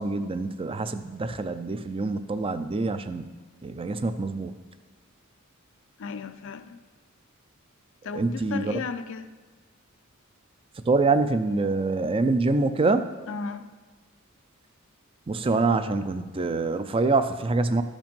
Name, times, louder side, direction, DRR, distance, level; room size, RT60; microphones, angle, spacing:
voice 1, 0.0-3.3 3.6-4.6 8.2-8.8 10.9-13.1 15.3-17.8, right 3 dB, 25° right, 11 dB, 0.4 m, -25 dB
voice 2, 6.0-6.8 8.0-9.3 13.3-13.7, left 4 dB, 60° left, 9 dB, 0.5 m, -35 dB
13.5 x 5.2 x 5.3 m, 1.4 s
head